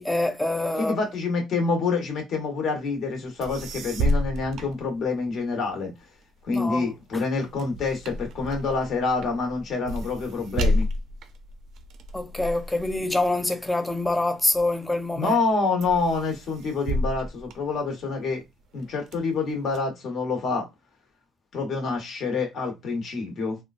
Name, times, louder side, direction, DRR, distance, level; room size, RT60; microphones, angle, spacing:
voice 1, 0.0-1.0 6.5-7.2 12.1-15.4, left 2 dB, 10° left, 0.5 m, -26 dB
voice 2, 0.8-5.9 6.4-10.9 15.1-18.4 18.7-20.7 21.5-23.6, left 4 dB, 55° left, 1.3 m, -27 dB
sound 1, 3.1-3.2 3.4-5.5 6.0-14.6 15.1-15.5 15.8-18.3 18.8-19.8, left 1 dB, 60° right, 0.5 m, -31 dB
3.6 x 2.3 x 2.4 m
cardioid pair, 125°, 0 cm